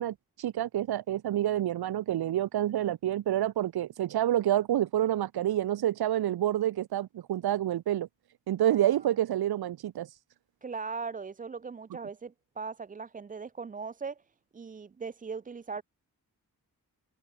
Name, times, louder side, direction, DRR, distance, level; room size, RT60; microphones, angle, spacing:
voice 1, 0.0-8.1 8.5-10.1, right 12 dB, 90° right, 0.7 m, -28 dB
voice 2, 8.6-9.0 10.6-14.2 14.5-15.8, right 5 dB, 25° right, 0.4 m, -39 dB
wide cardioid pair, 100°, 37 cm